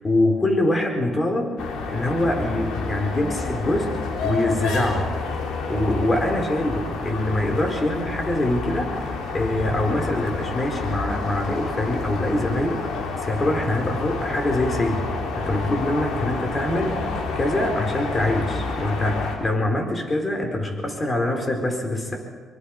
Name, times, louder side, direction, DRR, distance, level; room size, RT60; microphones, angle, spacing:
voice 1, 0.0-1.5 1.9-3.9 4.2-5.1 5.7-22.2, left 1 dB, 25° left, 3 dB, 4.7 m, -24 dB
sound 1, 1.6-19.4, left 4 dB, 85° left, 3.7 m, -29 dB
24.0 x 23.5 x 5.0 m, 1.5 s
cardioid pair, 90°, 0 cm